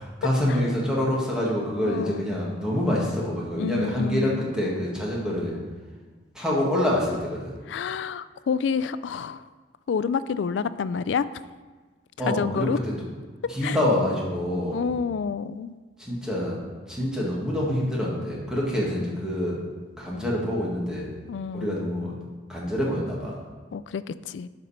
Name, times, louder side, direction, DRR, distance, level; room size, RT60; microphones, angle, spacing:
voice 1, 0.0-5.6 6.3-7.5 12.2-12.9 13.5-14.8 16.0-16.6 16.9-19.6 20.0-21.1 21.5-22.1 22.5-23.4, left 1 dB, 5° right, -5 dB, 1.9 m, -26 dB
voice 2, 1.8-2.2 3.6-4.5 7.7-9.4 9.9-11.3 12.3-12.8 13.6-13.8 14.7-15.8 21.3-21.9 23.7-24.5, left 6 dB, 85° left, 15 dB, 0.3 m, -28 dB
10.5 x 5.3 x 4.3 m, 1.4 s
head